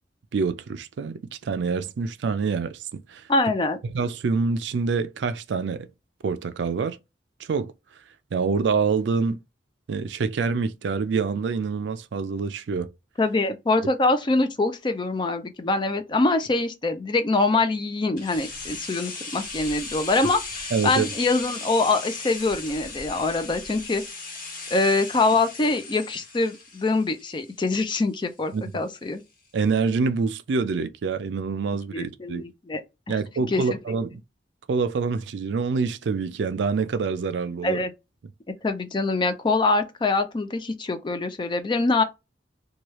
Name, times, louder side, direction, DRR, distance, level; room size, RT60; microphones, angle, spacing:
voice 1, 0.3-3.2 3.9-5.9 6.2-7.0 7.5-7.7 8.3-9.4 9.9-12.9 20.7-21.1 28.5-28.7 29.5-32.4 33.1-34.2 34.7-37.8, right 5 dB, 70° right, 0.4 m, -26 dB
voice 2, 3.3-3.8 13.2-24.0 24.7-29.2 31.9-32.8 33.1-33.2 33.5-33.8 37.6-37.9 38.6-42.0, left 3 dB, 25° left, 0.4 m, -24 dB
sound 1, 18.2-28.0 28.3-28.4, left 3 dB, 50° left, 1.1 m, -37 dB
3.1 x 2.3 x 2.9 m
head